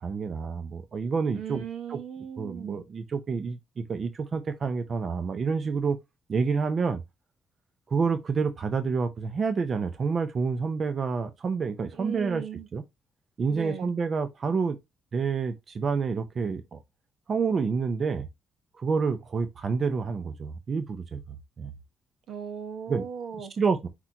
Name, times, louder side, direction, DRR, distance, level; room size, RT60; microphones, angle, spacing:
voice 1, 0.0-1.6 1.9-2.0 2.4-6.0 6.3-7.0 7.9-12.4 12.7-12.8 13.4-14.8 15.1-16.8 17.3-18.3 18.8-21.2 21.6-21.7 22.9-23.0 23.4-23.9, right 5 dB, 45° right, 0.7 m, -28 dB
voice 2, 1.3-2.8 11.9-12.7 13.5-13.9 22.3-23.5, right 8 dB, 70° right, 0.9 m, -37 dB
4.5 x 3.9 x 2.8 m
cardioid pair, 90°, 0 cm